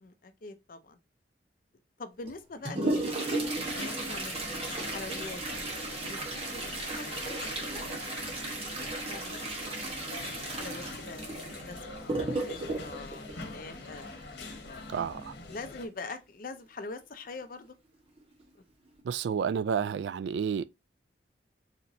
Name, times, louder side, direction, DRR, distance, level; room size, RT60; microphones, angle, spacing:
voice 1, 0.0-1.0 2.0-5.7 6.0-6.2 6.5-7.9 8.4-9.6 10.5-11.3 11.7-14.0 14.6-14.8 15.5-17.8 18.5-18.6, left 3 dB, 50° left, 0.5 m, -44 dB
Toilet flush, 2.2-14.2 16.1-16.2 16.5-16.6 17.4-17.5 18.2-18.4 18.9-19.0, right 2 dB, 35° right, 1.1 m, -35 dB
sound 1, 3.4-15.9, left 2 dB, 80° left, 1.1 m, -44 dB
voice 2, 14.9-15.3 19.1-20.6, right 7 dB, 80° right, 0.3 m, -30 dB
4.2 x 2.9 x 2.6 m
head